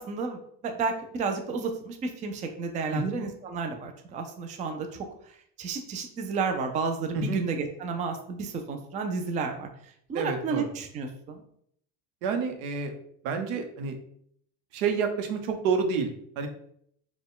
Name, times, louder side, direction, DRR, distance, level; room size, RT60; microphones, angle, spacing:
voice 1, 0.0-5.1 5.6-9.7 10.1-11.4, right 4 dB, 20° right, 5 dB, 0.3 m, -32 dB
voice 2, 10.1-10.7 12.2-12.9 13.2-14.0 14.7-16.1 16.4-16.5, right 5 dB, 90° right, 6 dB, 0.9 m, -28 dB
4.3 x 2.3 x 3.6 m, 0.67 s
cardioid pair, 130°, 41 cm